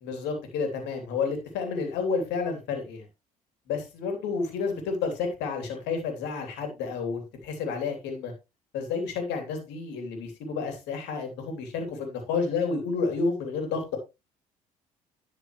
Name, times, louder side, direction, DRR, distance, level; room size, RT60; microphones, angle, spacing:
voice 1, 0.0-3.1 3.7-8.3 8.7-14.0, left 4 dB, 65° left, 5 dB, 3.1 m, -30 dB
11.0 x 6.5 x 3.1 m, 0.25 s
hypercardioid pair, 55°, 19 cm